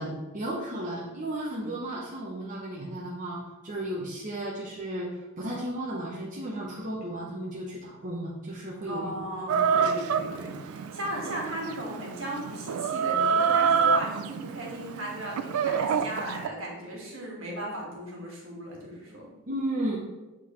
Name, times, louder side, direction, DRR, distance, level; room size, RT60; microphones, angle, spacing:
voice 1, 0.0-9.1 19.5-20.0, right 1 dB, 35° right, -5 dB, 0.9 m, -34 dB
voice 2, 8.8-19.3, right 1 dB, 65° right, -3 dB, 1.8 m, -36 dB
Chicken rooster, 9.5-16.5, right 6 dB, 85° right, 0.4 m, -27 dB
7.9 x 3.9 x 3.1 m, 1.1 s
head